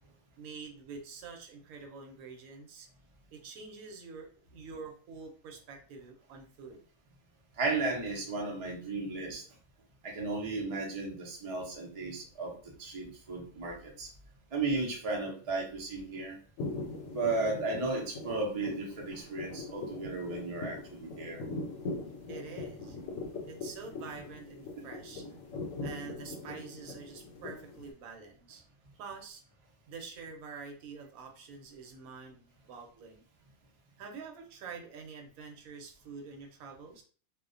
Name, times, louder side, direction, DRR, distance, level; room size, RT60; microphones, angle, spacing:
voice 1, 0.4-2.9 3.3-6.8 22.3-23.0 23.5-25.3 25.8-28.6 29.0-29.4 29.9-33.2 34.0-37.0, right 5 dB, 75° right, 3 dB, 1.0 m, -46 dB
voice 2, 7.6-9.4 10.0-14.1 14.5-16.4 17.1-21.4, right 3 dB, 55° right, -1 dB, 0.4 m, -34 dB
sound 1, 16.6-27.9, left 3 dB, 70° left, 0.9 m, -41 dB
2.4 x 2.1 x 2.4 m, 0.41 s
omnidirectional pair, 1.5 m